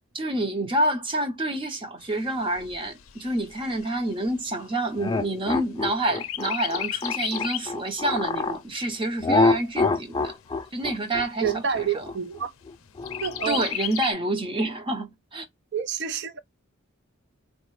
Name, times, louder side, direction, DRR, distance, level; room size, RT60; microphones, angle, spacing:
voice 1, 0.1-10.3 10.7-12.1 13.4-15.5, right 1 dB, 25° right, 0.7 m, -28 dB
Chirp tweet, 2.0-5.8 6.1-7.8 8.3-8.4 8.7-9.7 10.3-10.4 10.7-10.8 11.3-11.8 13.1-14.1, left 12 dB, 85° left, 0.5 m, -34 dB
sound 1, 5.0-8.6 9.2-13.7, left 3 dB, 20° left, 0.3 m, -26 dB
voice 2, 11.4-12.5 13.2-13.6 15.7-16.4, right 7 dB, 55° right, 0.5 m, -28 dB
4.1 x 2.1 x 3.1 m
head